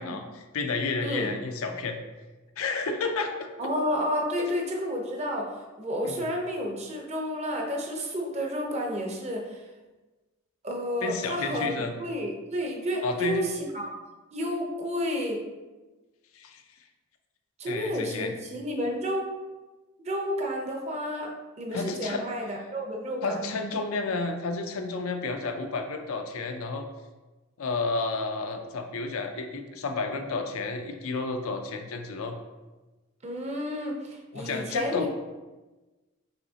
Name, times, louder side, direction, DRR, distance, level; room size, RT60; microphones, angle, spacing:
voice 1, 0.0-2.0 2.6-3.5 4.4-4.5 6.0-6.2 11.0-11.9 13.0-13.5 16.3-16.6 17.7-18.4 21.7-22.2 23.2-26.9 27.6-32.4 34.3-35.1, left 3 dB, 80° left, 5 dB, 0.5 m, -31 dB
voice 2, 1.0-1.3 3.6-9.6 10.6-13.9 14.3-15.4 17.6-19.3 20.0-23.5 33.2-35.1, equal, 30° right, 1 dB, 0.6 m, -31 dB
5.7 x 3.1 x 2.7 m, 1.2 s
head